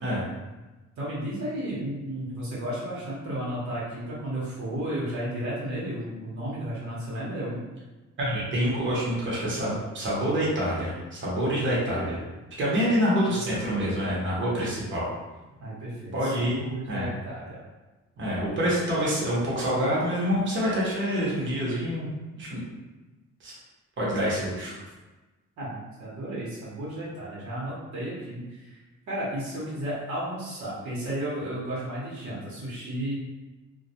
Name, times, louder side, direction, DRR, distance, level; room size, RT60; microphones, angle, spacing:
voice 1, 1.0-7.6 13.3-13.5 15.6-16.3 16.6-17.6 25.6-28.8 29.1-33.2, right 1 dB, 70° right, -7 dB, 1.0 m, -33 dB
voice 2, 8.2-12.2 12.6-15.1 16.1-17.1 18.2-22.6 23.4-23.5 24.0-24.7, equal, 40° right, -6 dB, 0.9 m, -27 dB
2.2 x 2.2 x 2.8 m, 1.2 s
cardioid pair, 90°, 30 cm